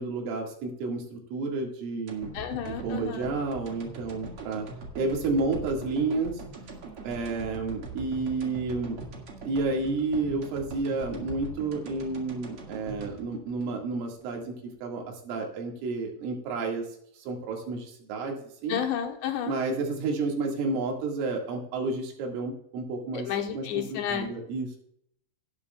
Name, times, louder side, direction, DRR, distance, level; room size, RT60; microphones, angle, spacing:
voice 1, 0.0-2.3 2.7-4.7 5.0-6.4 7.0-9.0 9.5-14.5 14.8-16.8 17.2-18.8 19.5-23.3 23.5-24.7, right 3 dB, 80° right, 0 dB, 4.5 m, -31 dB
sound 1, 2.1-14.3 14.7-14.8, right 3 dB, 55° right, 1.6 m, -42 dB
voice 2, 2.3-3.3 18.7-19.5 23.1-24.3, left 9 dB, 75° left, 4 dB, 3.0 m, -31 dB
18.0 x 9.8 x 2.3 m, 0.71 s
omnidirectional pair, 5.7 m